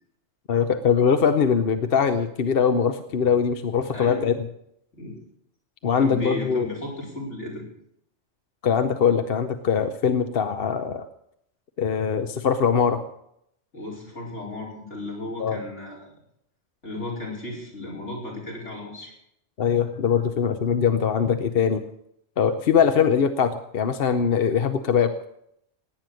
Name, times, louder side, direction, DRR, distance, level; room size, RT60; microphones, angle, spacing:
voice 1, 0.5-4.5 5.8-6.7 8.6-11.1 11.8-13.0 15.4-15.6 19.6-21.8 22.4-25.1, left 7 dB, 60° left, 9 dB, 0.9 m, -22 dB
voice 2, 3.9-4.4 4.9-5.2 5.8-7.7 13.7-16.1 16.8-19.1, left 1 dB, 75° left, -3 dB, 5.1 m, -35 dB
18.0 x 9.2 x 6.4 m, 0.75 s
omnidirectional pair, 1.2 m